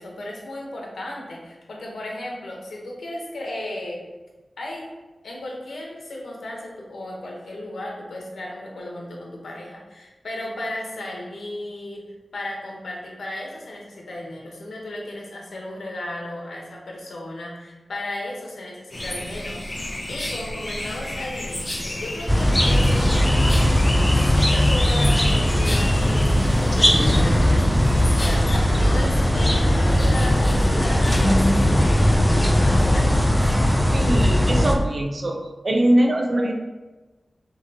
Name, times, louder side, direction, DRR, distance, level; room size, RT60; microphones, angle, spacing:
voice 1, 0.0-4.0 4.6-4.9 5.2-12.1 12.3-23.6 24.1-31.9 32.6-33.5, left 1 dB, 90° left, -2 dB, 1.1 m, -35 dB
sound 1, 18.9-32.1, left 1 dB, 35° left, 0.9 m, -32 dB
sound 2, 22.3-34.7, equal, 5° left, 0.5 m, -18 dB
sound 3, 28.2-34.7, left 1 dB, 65° left, 0.6 m, -32 dB
voice 2, 33.9-36.5, right 1 dB, 45° right, 2 dB, 0.7 m, -22 dB
5.9 x 3.1 x 2.9 m, 1.2 s
wide cardioid pair, 95°, 0 cm